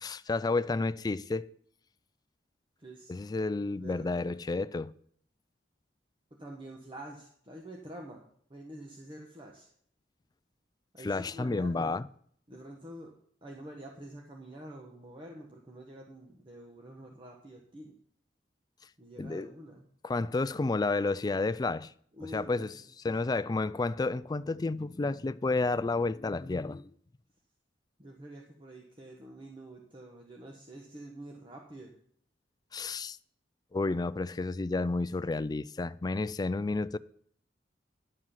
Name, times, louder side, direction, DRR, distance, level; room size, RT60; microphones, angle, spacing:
voice 1, 0.0-1.5 3.1-4.9 11.0-12.1 19.2-19.5 20.0-21.9 22.3-22.7 23.0-26.9 32.7-33.2 33.7-37.0, left 3 dB, 20° left, 0.3 m, -31 dB
voice 2, 2.8-3.1 3.7-4.3 6.3-9.7 10.9-11.9 12.5-13.2 13.4-17.9 19.0-19.8 22.1-23.1 28.0-32.0, right 1 dB, 30° right, 1.2 m, -47 dB
11.0 x 7.6 x 5.7 m
head